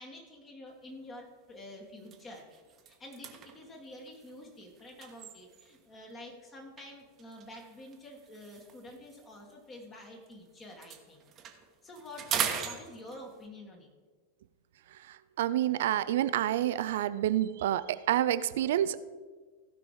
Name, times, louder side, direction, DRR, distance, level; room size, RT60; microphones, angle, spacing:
voice 1, 0.0-2.4 2.8-11.2 11.8-13.9 16.7-17.0, left 1 dB, 25° left, 1 dB, 1.8 m, -48 dB
sound 1, 0.8-1.0 1.5-1.6 2.0-5.9 6.8-10.3 10.6-13.5, right 8 dB, 30° right, 1.1 m, -40 dB
voice 2, 15.1-19.0, right 12 dB, 55° right, 15 dB, 0.4 m, -28 dB
16.0 x 5.3 x 4.8 m, 1.4 s
figure-of-eight pair, 90°, 0 cm